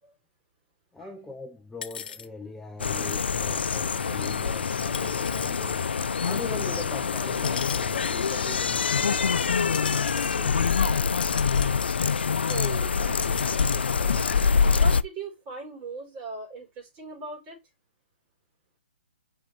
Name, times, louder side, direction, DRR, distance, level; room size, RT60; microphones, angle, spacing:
voice 1, 0.9-10.8, left 2 dB, 5° left, 0.5 m, -42 dB
sound 1, 1.8-2.3 3.4-3.5 4.9-5.5 6.3-6.5 7.3-8.1 8.7-9.1 9.7-12.2 12.5-12.7 13.0-14.0, left 7 dB, 60° left, 0.9 m, -39 dB
sound 2, 2.8-15.0, left 5 dB, 75° left, 0.5 m, -25 dB
voice 2, 4.0-4.4 5.0-5.1 12.5-14.2 14.7-17.6, right 4 dB, 25° right, 4.5 m, -40 dB
6.1 x 5.2 x 3.4 m
hypercardioid pair, 145°, 6 cm